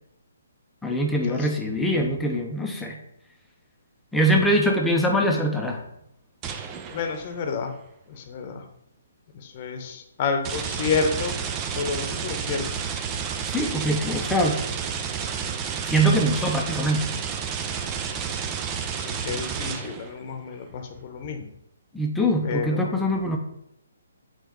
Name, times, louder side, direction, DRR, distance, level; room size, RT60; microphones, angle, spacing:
voice 1, 0.8-3.0 4.1-5.8 13.5-14.6 15.8-17.1 21.9-23.4, equal, 5° left, 0 dB, 0.8 m, -23 dB
sound 1, 6.4-7.4 10.4-20.2, right 7 dB, 20° right, 0.5 m, -31 dB
voice 2, 6.9-7.7 8.1-8.6 9.3-11.3 11.7-12.6 19.0-21.5 22.4-23.0, left 5 dB, 40° left, 6 dB, 1.0 m, -29 dB
8.0 x 4.4 x 3.1 m, 0.76 s
hypercardioid pair, 145°, 0 cm